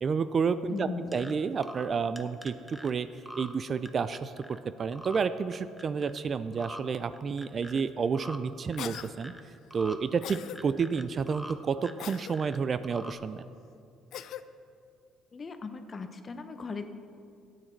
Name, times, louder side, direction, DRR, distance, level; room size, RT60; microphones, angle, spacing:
voice 1, 0.0-3.1 3.4-9.3 9.7-13.5, right 5 dB, 35° right, 13 dB, 0.4 m, -30 dB
voice 2, 0.7-1.2 15.3-16.9, left 4 dB, 30° left, 8 dB, 0.8 m, -38 dB
sound 1, 1.1-1.3 1.6-1.9 2.2-2.9 3.3-3.5 3.9-4.6 4.9-5.2 5.5-6.2 6.5-6.8 7.1-7.8 8.1-8.4 8.7-9.4 9.7-10.0 10.3-11.5 11.8-12.6 12.8-13.1, equal, 5° right, 0.7 m, -44 dB
Cough, 8.8-9.1 10.2-10.6 12.0-12.4 14.1-14.4, left 10 dB, 65° left, 0.4 m, -40 dB
13.0 x 9.2 x 4.5 m, 2.4 s
cardioid pair, 115°, 0 cm